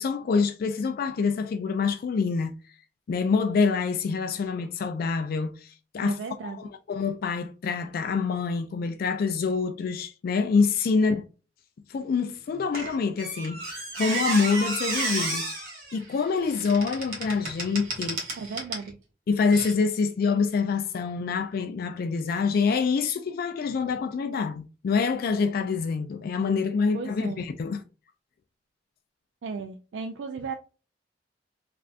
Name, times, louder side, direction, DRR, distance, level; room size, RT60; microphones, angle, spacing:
voice 1, 0.0-2.5 3.1-6.2 6.4-6.5 6.9-11.2 11.9-15.5 15.9-18.2 19.3-27.8, left 5 dB, 55° left, 0.3 m, -26 dB
voice 2, 6.0-6.6 18.4-19.0 26.9-27.4 29.4-30.5, right 4 dB, 75° right, 0.4 m, -35 dB
Squeak, 12.7-18.9 19.5-19.7, right 3 dB, 55° right, 1.2 m, -32 dB
3.3 x 2.5 x 2.4 m
head